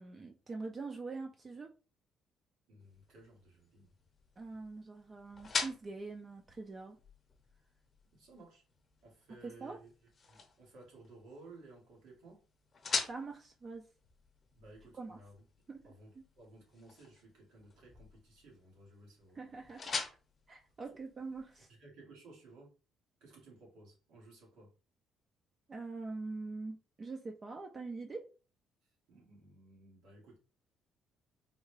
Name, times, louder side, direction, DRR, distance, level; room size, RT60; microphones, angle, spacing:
voice 1, 0.0-1.7 4.4-7.0 9.4-9.8 13.1-13.8 15.0-15.2 15.7-15.8 19.4-19.9 20.5-21.7 25.7-28.2, right 3 dB, 30° right, 0.4 m, -43 dB
voice 2, 2.7-3.9 8.1-8.6 9.0-9.9 10.3-12.4 14.6-15.4 15.8-19.7 21.7-22.7 23.2-24.7 29.1-30.4, right 2 dB, 90° right, 1.6 m, -57 dB
sound 1, 2.8-21.6, left 4 dB, 35° left, 0.8 m, -45 dB
3.7 x 2.2 x 3.1 m
cardioid pair, 125°, 0 cm